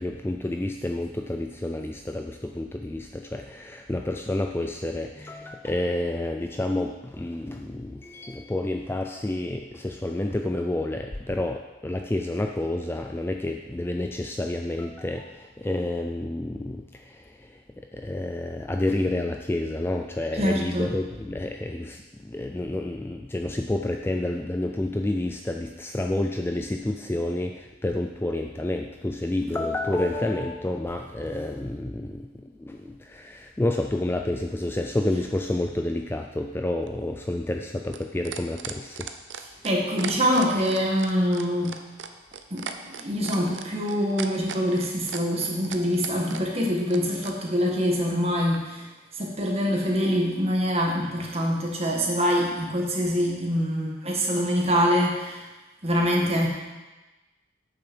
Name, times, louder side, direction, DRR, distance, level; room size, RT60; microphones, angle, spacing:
voice 1, 0.0-39.1, left 1 dB, 10° left, 3 dB, 0.3 m, -29 dB
voice 2, 20.4-20.9 39.6-41.8 42.5-48.9 49.1-55.4 55.8-56.5, equal, 30° right, -1 dB, 1.7 m, -25 dB
sound 1, 36.8-47.4 48.5-48.6, right 7 dB, 65° right, 0.7 m, -37 dB
8.8 x 6.8 x 6.2 m, 1.1 s
head